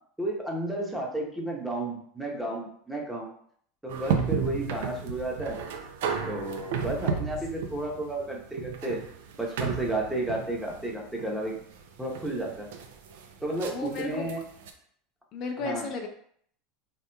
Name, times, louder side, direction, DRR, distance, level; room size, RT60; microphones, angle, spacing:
voice 1, 0.2-3.3 3.8-5.6 6.3-9.0 9.4-11.6 12.0-12.7 13.4-14.4 15.6-15.9, right 1 dB, 5° right, -1 dB, 0.8 m, -32 dB
sound 1, 3.9-14.7, right 6 dB, 70° right, 0.4 m, -33 dB
voice 2, 13.7-14.2 15.3-16.1, left 4 dB, 50° left, 3 dB, 0.5 m, -33 dB
3.4 x 2.9 x 2.2 m, 0.63 s
hypercardioid pair, 85°, 0 cm